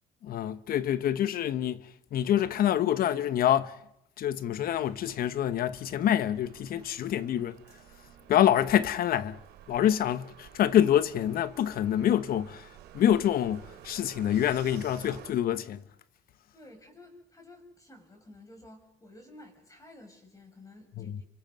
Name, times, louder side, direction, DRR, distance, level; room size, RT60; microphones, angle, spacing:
voice 1, 0.2-3.8 4.2-7.6 8.3-9.4 9.7-12.7 12.9-15.8 21.0-21.2, left 10 dB, 60° left, 1.1 m, -26 dB
sound 1, 4.7-15.3, right 11 dB, 75° right, 3.0 m, -52 dB
voice 2, 16.5-21.2, left 1 dB, 20° left, 7.0 m, -52 dB
30.0 x 24.0 x 5.4 m
cardioid pair, 110°, 17 cm